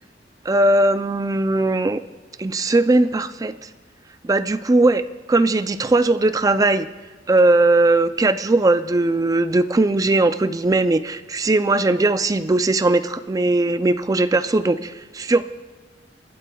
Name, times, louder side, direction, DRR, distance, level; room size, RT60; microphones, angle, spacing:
voice 1, 0.5-2.0 2.4-3.5 4.2-5.0 5.3-6.9 7.3-15.4, right 2 dB, 20° right, 11 dB, 0.4 m, -19 dB
25.0 x 11.5 x 2.3 m, 1.4 s
head